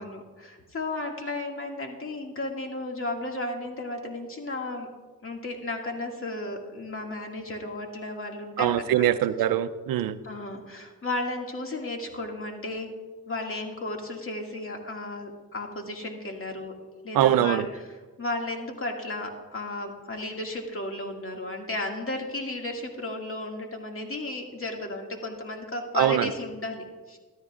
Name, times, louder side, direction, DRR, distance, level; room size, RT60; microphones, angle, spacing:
voice 1, 0.0-4.9 5.2-9.1 10.2-12.9 13.3-16.7 17.0-17.6 18.2-27.2, left 2 dB, 40° left, 2 dB, 2.1 m, -34 dB
voice 2, 8.6-10.2 17.1-17.7 25.9-26.3, right 11 dB, 85° right, 13 dB, 0.5 m, -23 dB
14.0 x 13.5 x 2.5 m, 1.3 s
cardioid pair, 60°, 34 cm